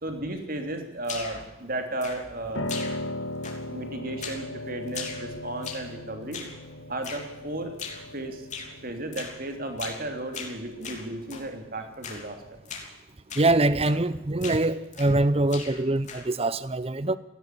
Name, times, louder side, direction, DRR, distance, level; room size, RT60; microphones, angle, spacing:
voice 1, 0.0-2.7 3.7-6.4 6.9-7.7 8.1-8.5 8.8-12.4, right 1 dB, 45° right, 3.3 m, -34 dB
sound 1, 1.0-1.5 2.0-2.4 2.7-3.2 3.4-3.8 4.2-4.5 4.9-5.9 6.3-6.6 7.0-7.3 7.8-8.1 8.5-8.7 9.1-9.4 9.8-10.1 10.3-11.5 12.0-12.3 12.7-12.9 13.3-13.5 13.8-14.1 14.4-15.2 15.5-16.4, left 5 dB, 35° left, 3.3 m, -39 dB
Piano, 2.5-12.5, left 1 dB, 70° left, 1.8 m, -38 dB
voice 2, 13.4-17.2, right 2 dB, 30° right, 0.7 m, -24 dB
17.5 x 16.0 x 10.0 m
head